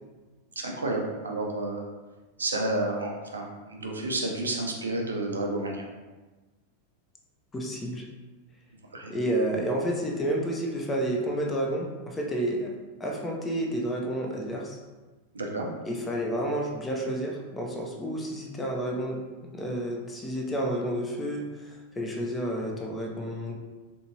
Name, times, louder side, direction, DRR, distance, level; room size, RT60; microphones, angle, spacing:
voice 1, 0.6-1.8 2.4-5.8 8.9-9.1 15.3-15.7, right 2 dB, 75° right, 0 dB, 0.5 m, -30 dB
voice 2, 7.5-8.1 9.1-12.7 13.0-14.8 15.9-19.2 19.5-23.6, right 1 dB, 15° left, 0 dB, 0.5 m, -30 dB
3.5 x 2.6 x 2.8 m, 1.2 s
figure-of-eight pair, 90°, 0 cm